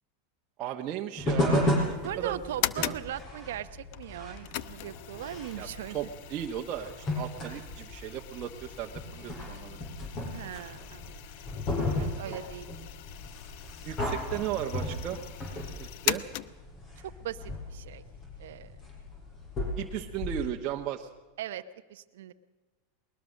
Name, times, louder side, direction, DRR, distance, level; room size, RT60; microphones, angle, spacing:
voice 1, 0.6-1.7 2.2-2.9 5.6-9.8 12.2-12.3 13.8-15.2 15.8-16.2 19.8-21.1, right 11 dB, 45° right, 0 dB, 1.2 m, -36 dB
sound 1, 1.2-20.4, left 1 dB, 35° left, 7.0 m, -35 dB
sound 2, 1.8-16.9, left 15 dB, 65° left, 0.7 m, -40 dB
voice 2, 2.0-6.0 10.3-11.2 12.0-12.7 17.2-18.0 18.4-18.7 21.4-21.6 21.9-22.3, right 11 dB, 75° right, 11 dB, 0.8 m, -39 dB
20.5 x 20.0 x 6.5 m, 1.2 s
hypercardioid pair, 110°, 0 cm